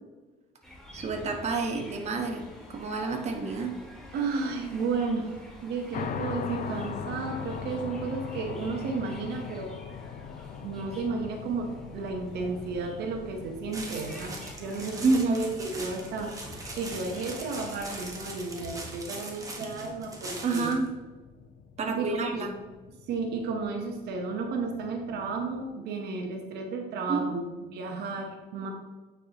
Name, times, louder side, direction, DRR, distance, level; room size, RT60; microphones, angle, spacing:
sound 1, 0.6-18.6, left 1 dB, 5° left, 1.9 m, -49 dB
voice 1, 0.9-3.8 15.0-15.4 20.4-20.9 21.8-22.6 27.1-27.4, right 3 dB, 40° right, 2 dB, 1.1 m, -28 dB
voice 2, 4.1-9.7 10.6-20.7 21.9-22.4 23.0-28.7, right 4 dB, 75° right, 2 dB, 1.1 m, -33 dB
sound 2, 5.9-25.7, left 7 dB, 50° left, 0.6 m, -42 dB
sound 3, 13.7-20.9, right 2 dB, 20° right, 1.3 m, -41 dB
8.8 x 4.8 x 2.9 m, 1.3 s
cardioid pair, 110°, 17 cm